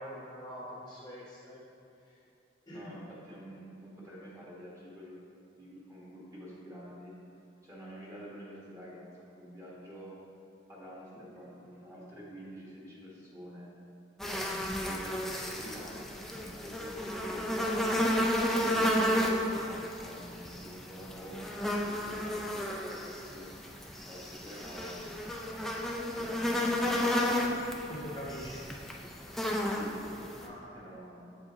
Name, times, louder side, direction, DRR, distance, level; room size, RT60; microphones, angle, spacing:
voice 1, 0.0-1.6 2.0-2.2 2.7-2.9 27.9-28.6 30.4-30.7 31.0-31.2, equal, 25° left, -6 dB, 0.9 m, -44 dB
voice 2, 2.7-5.2 5.5-7.1 7.6-9.1 9.4-10.1 10.7-13.7 14.3-18.0 18.6-23.5 24.0-25.4 26.1-27.7 29.7-30.2 30.7-31.3, equal, 15° right, -7 dB, 1.4 m, -48 dB
sound 1, 14.2-30.5, equal, ahead, 0.4 m, -32 dB
7.6 x 7.2 x 2.8 m, 2.8 s
head